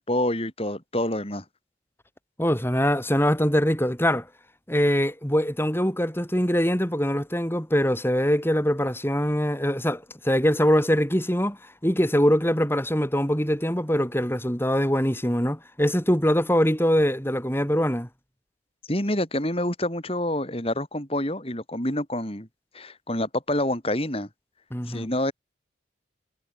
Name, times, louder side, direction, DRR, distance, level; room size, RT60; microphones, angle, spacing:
voice 1, 0.0-1.4 18.9-22.5 22.7-24.3 24.9-25.3, left 1 dB, 30° left, 6.6 m, -27 dB
voice 2, 2.4-4.3 4.7-18.1 24.7-25.1, equal, 10° left, 7.5 m, -23 dB
head